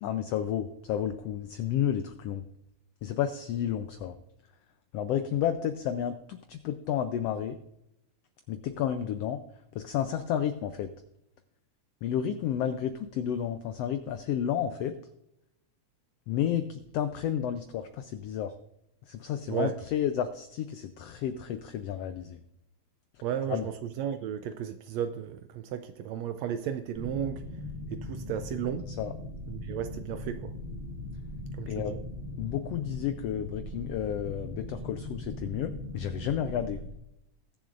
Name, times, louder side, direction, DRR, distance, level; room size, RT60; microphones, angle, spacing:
voice 1, 0.0-2.4 3.0-4.2 4.9-7.6 8.5-9.4 9.7-10.9 12.0-15.0 16.3-18.5 19.1-22.4 23.5-23.7 29.0-29.1 31.7-32.0 32.4-36.8, left 9 dB, 90° left, 1.4 m, -31 dB
voice 2, 23.2-27.4 27.9-28.9 29.5-30.5 31.5-32.0, right 9 dB, 80° right, 1.6 m, -34 dB
sound 1, 26.9-36.9, left 1 dB, 30° right, 0.7 m, -40 dB
21.0 x 7.1 x 2.5 m
omnidirectional pair, 3.5 m